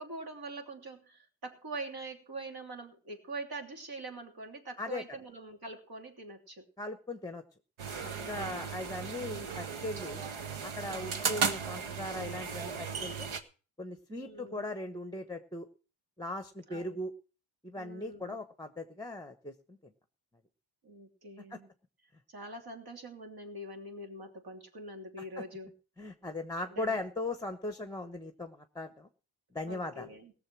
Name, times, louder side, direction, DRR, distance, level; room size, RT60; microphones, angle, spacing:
voice 1, 0.0-6.6 8.2-8.6 10.9-11.3 14.1-14.7 16.7-17.0 17.8-18.4 20.8-21.7 22.3-25.7 26.7-27.0 29.7-30.3, right 2 dB, 50° right, 4 dB, 3.1 m, -44 dB
voice 2, 6.8-7.4 8.2-10.2 10.6-13.3 13.8-15.7 16.2-17.1 17.6-19.9 21.5-21.6 25.4-25.5 26.0-29.1 29.5-30.1, left 2 dB, 10° left, 8 dB, 1.0 m, -39 dB
atmo espresso, 7.8-13.4, right 6 dB, 80° right, 1.6 m, -36 dB
18.0 x 6.9 x 6.0 m, 0.37 s
cardioid pair, 105°, 47 cm